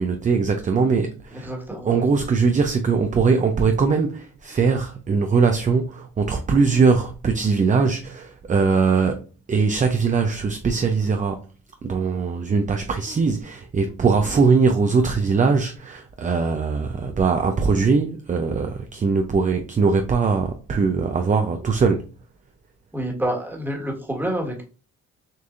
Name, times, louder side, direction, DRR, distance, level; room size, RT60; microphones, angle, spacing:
voice 1, 0.0-1.5 1.8-11.4 11.8-22.0, right 5 dB, 25° right, 0.5 m, -21 dB
voice 2, 1.3-2.0 22.9-24.6, right 1 dB, 5° right, 1.5 m, -28 dB
6.6 x 2.6 x 2.5 m
cardioid pair, 90°, 30 cm